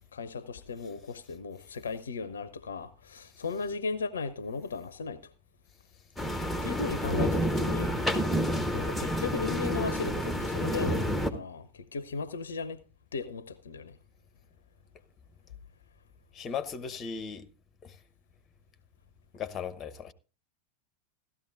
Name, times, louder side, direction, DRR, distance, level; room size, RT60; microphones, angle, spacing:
voice 1, 0.1-5.2 6.6-8.1 8.7-12.8 13.1-14.0, left 4 dB, 70° left, 0.5 m, -36 dB
sound 1, 6.2-11.3, equal, ahead, 1.0 m, -29 dB
voice 2, 16.3-17.4 17.8-17.9 19.3-20.1, left 7 dB, 25° left, 0.8 m, -37 dB
16.0 x 12.5 x 2.5 m
figure-of-eight pair, 90°, 0 cm